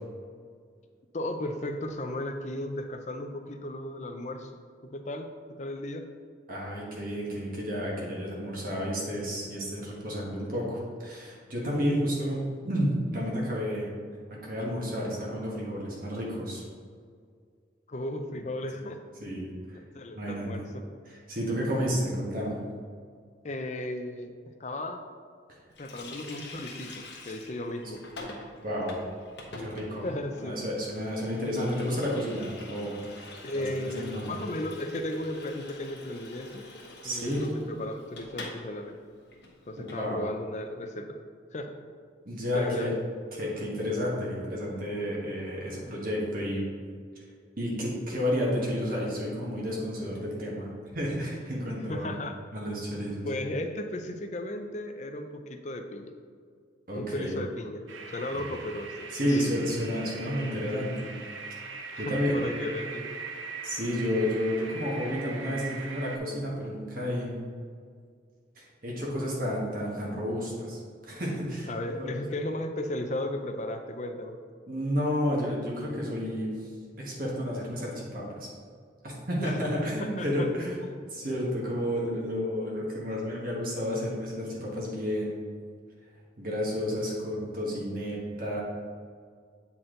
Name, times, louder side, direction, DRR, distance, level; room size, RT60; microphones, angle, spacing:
voice 1, 1.1-4.5 4.8-5.3 5.6-6.1 17.9-19.0 19.7-20.8 23.4-24.3 24.6-25.0 25.8-28.0 30.0-30.6 33.4-36.6 37.0-38.9 39.7-41.2 41.5-41.7 42.5-42.9 51.9-52.3 53.2-56.1 56.9-57.8 58.1-59.6 61.9-63.1 71.7-74.4 79.4-79.6 80.2-80.9, left 1 dB, 35° left, 6 dB, 0.5 m, -35 dB
voice 2, 6.5-13.9 14.4-16.6 19.2-19.8 20.1-20.6 21.1-22.6 28.6-29.0 29.6-30.0 30.4-34.3 37.0-37.4 39.8-40.2 42.2-42.9 43.3-46.6 47.6-52.2 52.5-53.3 56.9-57.3 58.3-58.5 59.1-61.2 62.0-62.3 63.6-67.4 68.5-71.7 72.0-72.1 74.7-76.7 77.0-78.5 79.0-80.8 81.1-85.4 86.4-88.6, equal, 45° right, -4 dB, 1.4 m, -31 dB
Water tap faucet, 25.8-38.6 38.9-39.0 39.3-40.0, left 2 dB, 60° left, 1.1 m, -44 dB
sound 1, 57.9-66.2, right 4 dB, 85° right, 0.6 m, -41 dB
8.3 x 4.3 x 3.8 m, 2.1 s
head